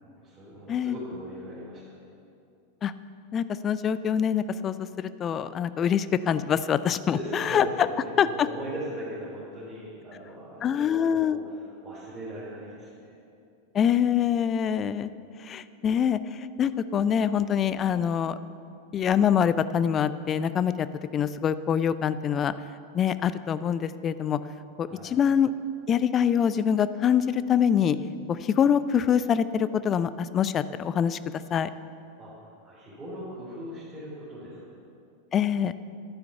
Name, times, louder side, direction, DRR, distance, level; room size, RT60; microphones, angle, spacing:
voice 1, 0.0-1.8 7.0-13.1 24.9-25.1 32.2-34.6, right 1 dB, 15° right, -9 dB, 3.7 m, -39 dB
voice 2, 3.3-7.9 8.2-8.5 10.6-11.4 13.7-15.1 15.4-18.4 18.9-20.9 21.1-22.5 22.9-24.4 24.8-25.5 25.9-28.0 28.3-31.2 31.5-31.7 35.3-35.7, left 8 dB, 25° left, 14 dB, 0.4 m, -25 dB
11.5 x 9.9 x 7.0 m, 2.6 s
figure-of-eight pair, 90°, 0 cm